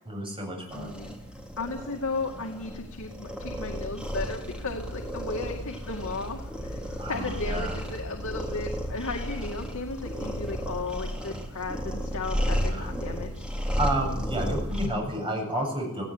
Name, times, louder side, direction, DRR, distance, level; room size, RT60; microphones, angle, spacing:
voice 1, 0.0-1.0 7.0-7.8 12.7-12.9 13.8-16.1, right 1 dB, 25° right, 0 dB, 8.0 m, -31 dB
voice 2, 0.7-1.1 1.6-13.5, left 3 dB, 70° left, 1 dB, 2.3 m, -35 dB
sound 1, 0.7-14.9, equal, 5° right, 3.5 m, -33 dB
sound 2, 4.4-11.1, equal, 90° left, 2.8 m, -42 dB
19.0 x 16.5 x 9.4 m, 0.82 s
head